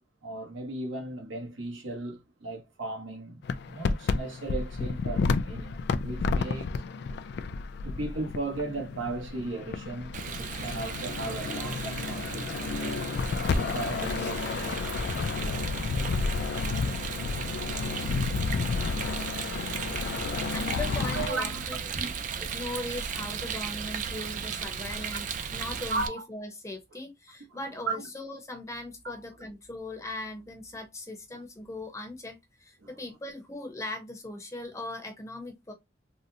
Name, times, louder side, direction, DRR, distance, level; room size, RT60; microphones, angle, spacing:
voice 1, 0.2-6.8 7.8-13.1 13.5-14.8 21.0-21.7 21.9-22.1 25.1-25.2 25.7-26.3 27.5-27.6 27.8-28.1 29.0-29.2 32.8-32.9, right 3 dB, 85° right, 1.1 m, -36 dB
sound 1, 3.4-21.3, left 4 dB, 60° left, 0.3 m, -31 dB
Rain, 10.1-26.1, right 6 dB, 40° right, 0.3 m, -36 dB
voice 2, 20.5-35.7, left 2 dB, 15° left, 0.7 m, -39 dB
3.8 x 2.1 x 2.7 m
head